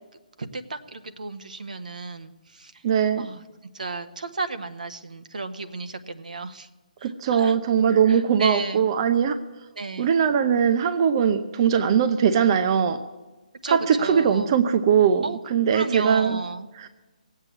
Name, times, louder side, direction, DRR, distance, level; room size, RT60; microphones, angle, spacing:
voice 1, 0.4-2.8 3.2-3.4 3.7-6.7 7.0-7.6 7.9-8.9 9.8-10.1 13.6-14.5 15.2-15.4 15.7-16.7, right 3 dB, 75° right, 8 dB, 1.3 m, -33 dB
voice 2, 2.8-3.3 7.0-9.4 10.0-13.0 13.7-16.4 16.8-16.9, right 7 dB, 35° right, 8 dB, 0.8 m, -21 dB
18.0 x 8.3 x 8.3 m, 1.2 s
figure-of-eight pair, 145°, 4 cm